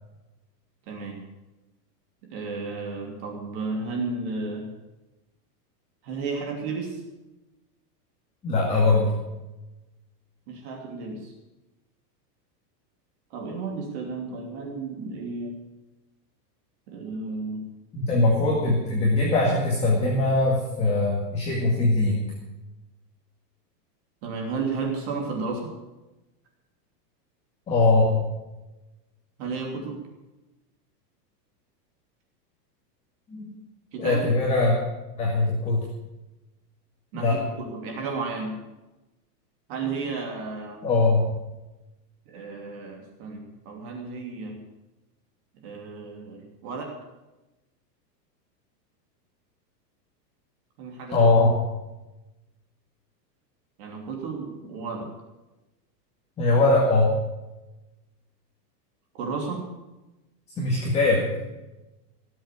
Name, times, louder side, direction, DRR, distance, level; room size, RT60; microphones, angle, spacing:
voice 1, 0.9-1.2 2.2-4.7 6.0-7.0 10.5-11.3 13.3-15.6 16.9-17.6 24.2-25.7 29.4-30.0 33.9-34.3 37.1-38.6 39.7-40.8 42.3-44.6 45.5-46.9 50.8-51.3 53.8-55.1 59.1-59.6, right 4 dB, 40° right, 1 dB, 3.0 m, -33 dB
voice 2, 8.4-9.1 17.9-22.2 27.7-28.2 33.3-33.5 34.0-34.8 35.2-35.8 37.1-37.4 40.8-41.2 51.1-51.6 56.4-57.1 60.6-61.3, left 2 dB, 15° left, -4 dB, 2.1 m, -21 dB
18.0 x 7.7 x 8.5 m, 1.0 s
supercardioid pair, 170°, 49 cm